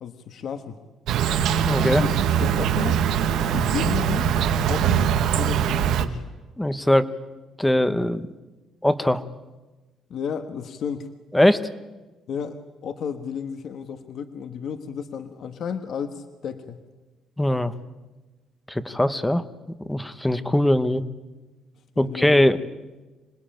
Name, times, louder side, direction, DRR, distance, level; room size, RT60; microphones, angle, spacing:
voice 1, 0.0-0.8 1.9-3.0 3.5-4.3 4.6-6.2 10.1-11.1 12.3-16.8 21.9-22.5, left 7 dB, 55° left, 8 dB, 1.4 m, -32 dB
Insect, 1.1-6.1, right 8 dB, 70° right, 1.4 m, -22 dB
voice 2, 1.6-2.0 6.6-7.1 7.6-8.3 8.8-9.2 11.3-11.6 17.4-17.7 18.7-19.4 19.9-21.0 22.0-22.6, left 1 dB, 5° left, 13 dB, 0.9 m, -20 dB
26.5 x 20.5 x 9.0 m, 1.2 s
cardioid pair, 155°, 0 cm